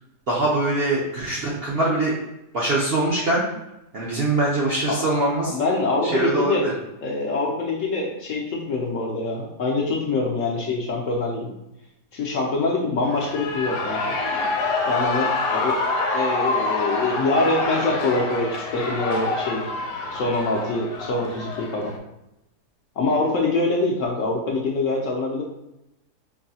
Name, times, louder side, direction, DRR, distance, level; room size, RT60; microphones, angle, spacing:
voice 1, 0.3-2.1 2.5-3.4 3.9-5.5 6.0-6.7, right 2 dB, 55° right, -5 dB, 0.7 m, -23 dB
voice 2, 5.4-6.7 7.0-11.5 12.1-14.2 14.8-15.8 16.1-19.7 20.1-21.9 23.0-25.4, left 2 dB, 65° left, -1 dB, 0.8 m, -24 dB
Shout / Cheering, 13.0-22.0, left 3 dB, 85° left, 1.2 m, -26 dB
4.7 x 2.6 x 2.7 m, 0.90 s
omnidirectional pair, 1.8 m